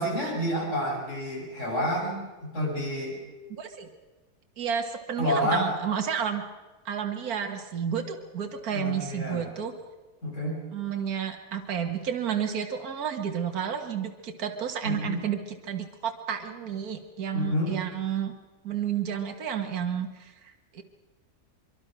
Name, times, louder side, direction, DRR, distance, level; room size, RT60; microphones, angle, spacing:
voice 1, 0.0-3.2 5.2-5.7 8.7-9.4 10.2-10.6 14.8-15.2 17.3-17.7, equal, 45° left, -3 dB, 7.6 m, -29 dB
voice 2, 3.6-3.9 4.6-6.4 6.9-9.7 10.7-18.3 18.6-20.8, right 8 dB, 65° right, 4 dB, 2.0 m, -31 dB
24.5 x 23.5 x 6.1 m, 1.2 s
omnidirectional pair, 1.7 m